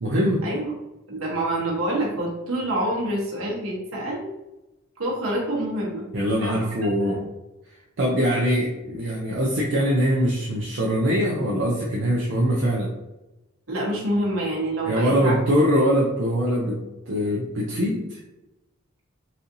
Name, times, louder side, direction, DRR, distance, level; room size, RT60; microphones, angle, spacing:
voice 1, 0.0-0.4 6.1-7.2 8.0-12.9 14.8-18.2, equal, 55° right, -4 dB, 0.5 m, -22 dB
voice 2, 1.1-4.3 5.0-6.0 6.4-7.2 13.7-15.4, right 1 dB, 75° right, -3 dB, 1.1 m, -27 dB
4.2 x 2.6 x 2.6 m, 0.99 s
head